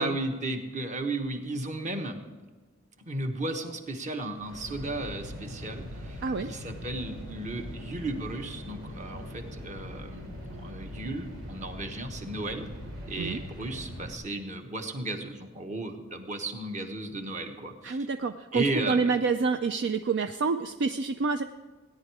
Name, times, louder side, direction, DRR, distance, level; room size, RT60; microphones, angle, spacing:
voice 1, 0.0-2.2 3.0-6.2 6.5-12.7 13.1-18.0 18.5-19.2, right 2 dB, 35° right, 5 dB, 1.2 m, -34 dB
sound 1, 4.3-14.1, equal, 80° right, 3.2 m, -41 dB
voice 2, 17.8-21.4, right 4 dB, 55° right, 8 dB, 0.4 m, -27 dB
17.0 x 10.5 x 4.8 m, 1.3 s
head